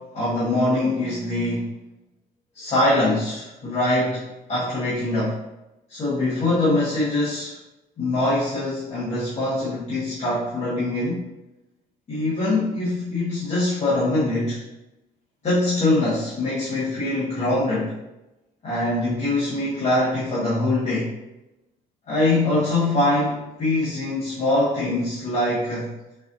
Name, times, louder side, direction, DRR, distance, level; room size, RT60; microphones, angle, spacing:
voice 1, 0.0-1.7 2.5-5.4 5.9-7.6 8.0-11.3 12.1-14.6 15.4-18.0 18.6-21.2 22.1-25.9, left 2 dB, 40° left, -9 dB, 1.2 m, -23 dB
3.9 x 2.7 x 2.6 m, 0.97 s
cardioid pair, 110°, 17 cm